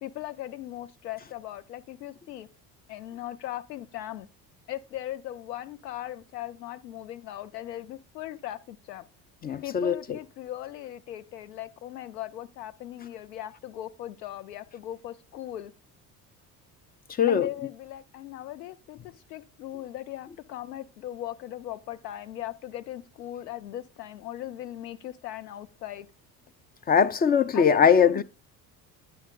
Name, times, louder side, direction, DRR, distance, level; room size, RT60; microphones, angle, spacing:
voice 1, 0.0-2.5 2.9-4.3 4.7-9.0 9.6-15.7 17.3-26.1 27.5-28.2, left 13 dB, 80° left, 0.8 m, -38 dB
voice 2, 9.4-10.0 17.2-17.5 26.9-28.2, left 7 dB, 20° left, 0.3 m, -21 dB
10.0 x 5.7 x 3.7 m
hypercardioid pair, 60°, 48 cm